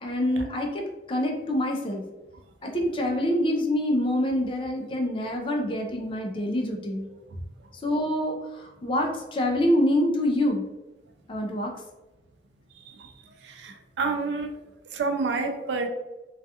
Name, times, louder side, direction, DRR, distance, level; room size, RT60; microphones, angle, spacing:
voice 1, 0.0-2.0 2.6-7.1 7.8-10.6 11.3-11.7, left 1 dB, 30° left, 1 dB, 0.4 m, -26 dB
voice 2, 13.6-14.5 14.9-15.9, right 4 dB, 80° right, 4 dB, 0.4 m, -28 dB
2.3 x 2.3 x 2.7 m, 1.1 s
head